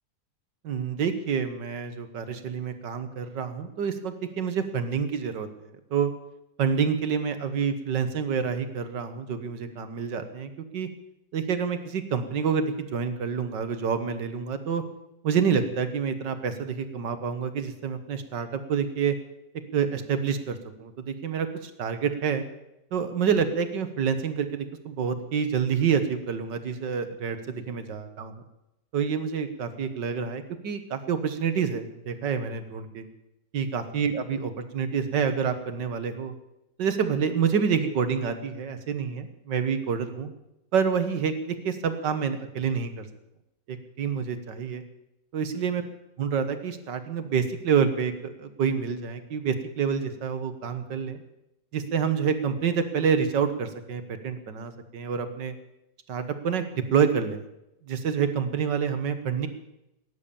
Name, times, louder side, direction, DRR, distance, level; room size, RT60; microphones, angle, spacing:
voice 1, 0.6-6.1 6.6-10.9 11.3-14.8 15.2-19.2 19.7-22.5 22.9-28.3 28.9-33.1 33.5-36.3 36.8-40.3 40.7-43.1 43.7-44.8 45.3-45.8 46.2-51.2 51.7-55.5 56.1-57.4 57.9-59.5, right 6 dB, 75° right, 9 dB, 1.9 m, -28 dB
19.5 x 10.5 x 7.0 m, 0.88 s
omnidirectional pair, 1.9 m